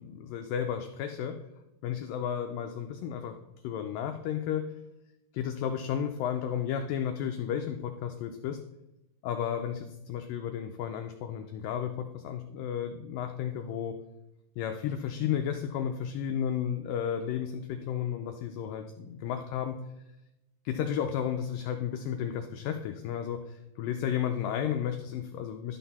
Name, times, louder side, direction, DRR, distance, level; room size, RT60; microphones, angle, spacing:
voice 1, 0.0-1.4 1.8-3.4 3.6-4.6 5.3-8.6 9.2-14.0 14.6-19.8 20.7-25.8, left 9 dB, 85° left, 5 dB, 2.0 m, -33 dB
11.5 x 5.9 x 4.1 m, 0.91 s
omnidirectional pair, 4.6 m